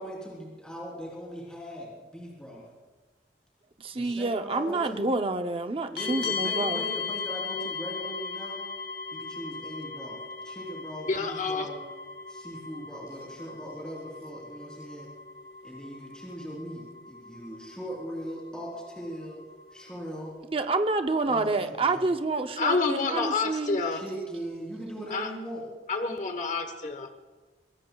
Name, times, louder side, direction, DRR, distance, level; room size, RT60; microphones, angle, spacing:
voice 1, 0.0-2.6 3.9-5.1 5.9-8.6 9.1-11.8 12.3-15.1 15.6-19.4 19.7-20.3 21.3-22.2 23.9-25.7, equal, 5° left, -4 dB, 3.4 m, -40 dB
voice 2, 3.8-6.8 20.5-23.8, right 3 dB, 30° right, 7 dB, 0.6 m, -28 dB
sound 1, 6.0-20.3, left 5 dB, 70° left, 2.2 m, -38 dB
voice 3, 11.1-11.7 22.6-24.0 25.1-25.3 25.9-27.1, left 4 dB, 45° left, 6 dB, 1.1 m, -28 dB
23.5 x 18.5 x 2.3 m, 1.3 s
head